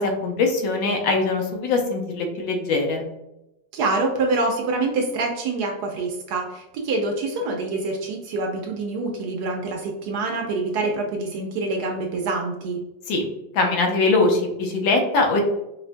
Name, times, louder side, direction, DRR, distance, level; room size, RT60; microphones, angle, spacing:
voice 1, 0.0-3.1 13.1-13.3 13.5-15.4, left 3 dB, 90° left, 2 dB, 1.5 m, -22 dB
voice 2, 3.7-12.8, right 3 dB, 70° right, 2 dB, 1.0 m, -26 dB
4.8 x 2.2 x 2.5 m, 0.92 s
omnidirectional pair, 2.0 m